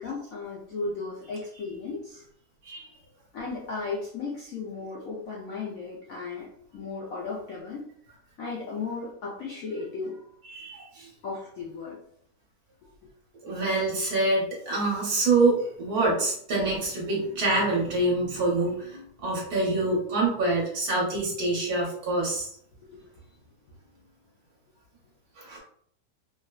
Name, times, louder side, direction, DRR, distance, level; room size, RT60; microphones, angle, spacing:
voice 1, 0.0-2.2 3.3-7.9 8.4-10.2 11.2-12.0 16.6-16.7 22.8-23.0, left 4 dB, 70° left, -3 dB, 0.8 m, -35 dB
voice 2, 10.4-11.1 13.4-22.5 25.4-25.6, right 2 dB, 60° right, -4 dB, 1.5 m, -26 dB
3.7 x 2.1 x 2.3 m, 0.64 s
omnidirectional pair, 1.9 m